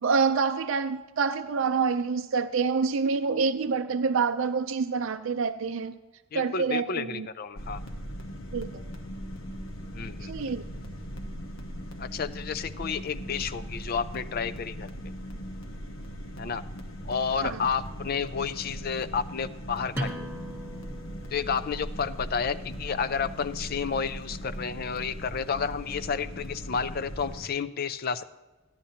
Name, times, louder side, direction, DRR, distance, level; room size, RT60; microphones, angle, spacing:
voice 1, 0.0-5.9 6.3-7.3 8.5-8.8 10.2-10.6 17.5-17.6, right 5 dB, 70° right, 7 dB, 0.4 m, -27 dB
voice 2, 6.3-7.8 9.9-10.5 12.0-14.9 16.4-16.6 17.0-20.3 21.3-28.2, left 6 dB, 45° left, 14 dB, 0.4 m, -31 dB
sound 1, 7.6-27.5, equal, 80° left, 1.2 m, -39 dB
sound 2, 19.9-25.3, equal, 10° right, 1.2 m, -41 dB
15.0 x 10.0 x 2.8 m, 1.1 s
head